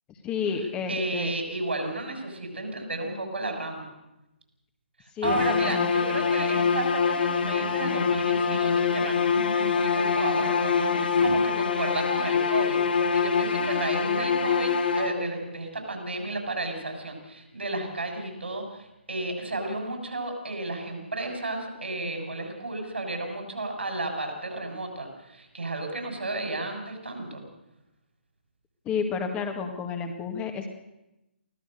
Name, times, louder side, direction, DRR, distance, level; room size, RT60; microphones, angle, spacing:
voice 1, 0.2-1.3 5.1-5.9 28.9-30.7, left 5 dB, 15° left, 4 dB, 1.9 m, -31 dB
voice 2, 0.9-3.9 5.0-27.4, right 2 dB, 75° right, 4 dB, 6.8 m, -33 dB
sound 1, 5.2-15.5, left 6 dB, 55° left, 2.1 m, -25 dB
24.5 x 16.5 x 6.8 m, 0.93 s
figure-of-eight pair, 135°, 6 cm